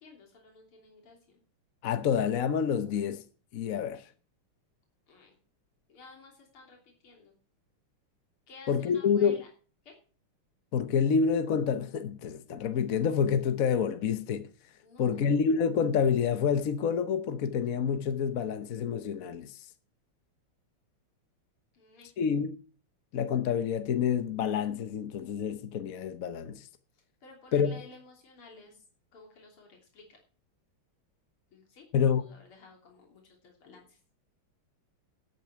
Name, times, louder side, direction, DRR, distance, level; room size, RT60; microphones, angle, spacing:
voice 1, 0.0-1.4 5.1-5.3 5.9-7.3 8.5-9.5 9.8-10.0 14.8-15.4 21.7-22.1 27.2-28.8 29.1-30.2 31.5-31.9 32.2-34.0, left 3 dB, 75° left, 4.0 m, -53 dB
voice 2, 1.8-3.2 3.5-4.0 8.7-9.4 10.7-14.5 15.0-19.6 22.2-22.6 23.1-26.7 27.5-27.7 31.9-32.3, left 7 dB, 55° left, 1.0 m, -28 dB
12.5 x 8.9 x 5.9 m
omnidirectional pair, 2.4 m